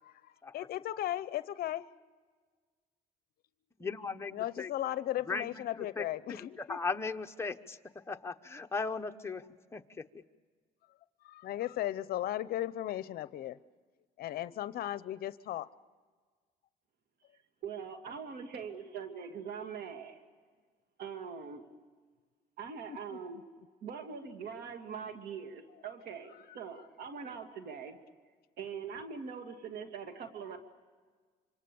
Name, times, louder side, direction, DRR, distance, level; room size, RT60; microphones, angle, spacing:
voice 1, 0.0-1.8 4.3-6.8 11.2-13.6 14.2-15.7 22.9-23.0 26.5-26.6, left 13 dB, 65° left, 15 dB, 0.7 m, -36 dB
voice 2, 3.8-4.7 5.3-9.5 9.7-10.1, left 4 dB, 15° left, 4 dB, 1.2 m, -38 dB
voice 3, 17.6-20.2 21.0-21.6 22.6-23.4 23.8-28.0 28.6-30.6, right 6 dB, 70° right, 6 dB, 2.4 m, -42 dB
26.5 x 26.0 x 7.0 m, 1.5 s
cardioid pair, 110°, 17 cm